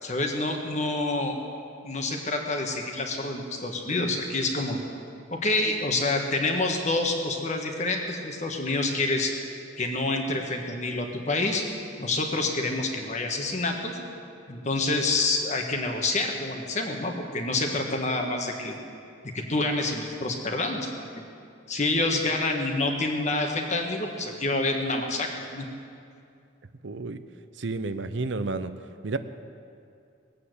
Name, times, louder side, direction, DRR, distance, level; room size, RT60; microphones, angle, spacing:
voice 1, 0.0-1.4 1.8-4.8 5.3-9.3 9.8-11.6 12.0-14.0 14.5-18.8 19.3-20.9 21.1-21.2 21.7-25.6, left 2 dB, 35° left, 2 dB, 1.6 m, -27 dB
voice 2, 26.8-27.2 27.6-28.7 29.0-29.2, right 3 dB, 70° right, 11 dB, 0.6 m, -30 dB
19.0 x 8.6 x 8.0 m, 2.4 s
head